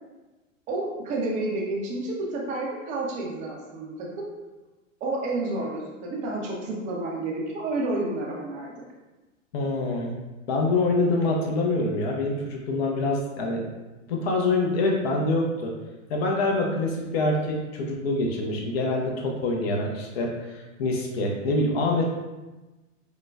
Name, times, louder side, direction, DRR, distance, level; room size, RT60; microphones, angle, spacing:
voice 1, 0.7-4.1 5.0-8.7, right 2 dB, 20° right, -2 dB, 0.5 m, -30 dB
voice 2, 9.5-10.1 10.5-13.6 14.1-15.7 16.1-22.0, left 2 dB, 50° left, -1 dB, 0.7 m, -25 dB
4.9 x 2.1 x 2.2 m, 1.1 s
figure-of-eight pair, 100°, 39 cm